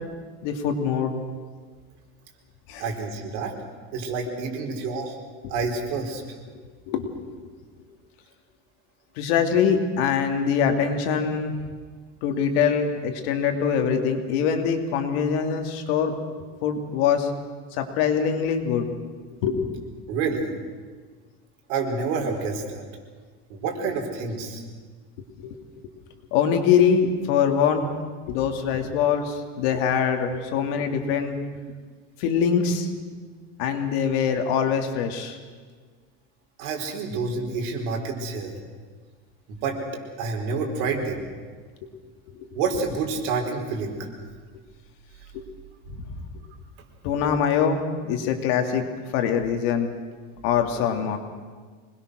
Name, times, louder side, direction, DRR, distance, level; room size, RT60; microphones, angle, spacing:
voice 1, 0.4-1.1 2.7-2.8 6.9-7.3 9.2-11.5 12.2-16.1 16.6-17.3 17.8-19.0 19.4-19.9 25.4-25.5 26.3-27.9 28.3-31.4 32.2-32.9 33.6-35.4 41.8-41.9 45.3-45.4 47.0-47.8 48.1-48.8 49.1-49.9 50.4-51.2, left 7 dB, 75° left, 5 dB, 2.8 m, -23 dB
voice 2, 2.8-3.5 3.9-5.1 5.5-6.2 20.1-20.5 21.7-22.8 23.5-24.6 36.6-38.5 39.5-39.8 40.2-41.3 42.5-44.0, right 4 dB, 75° right, 2 dB, 4.6 m, -28 dB
26.0 x 20.5 x 6.4 m, 1.5 s
cardioid pair, 175°, 32 cm